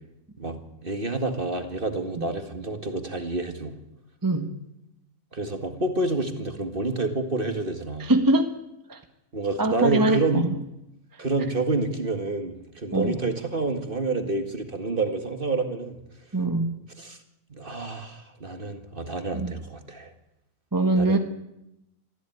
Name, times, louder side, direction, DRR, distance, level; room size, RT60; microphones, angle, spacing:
voice 1, 0.4-3.7 5.3-8.1 9.3-10.5 11.2-16.0 17.0-17.2 17.5-20.1 21.0-21.2, right 3 dB, 35° right, 7 dB, 2.2 m, -28 dB
voice 2, 8.0-8.5 8.9-9.0 9.6-10.5 11.1-11.2 12.9-13.2 16.3-16.8 19.3-19.5 20.7-21.2, right 2 dB, 15° right, 6 dB, 1.5 m, -23 dB
24.0 x 14.5 x 9.5 m, 0.87 s
omnidirectional pair, 1.6 m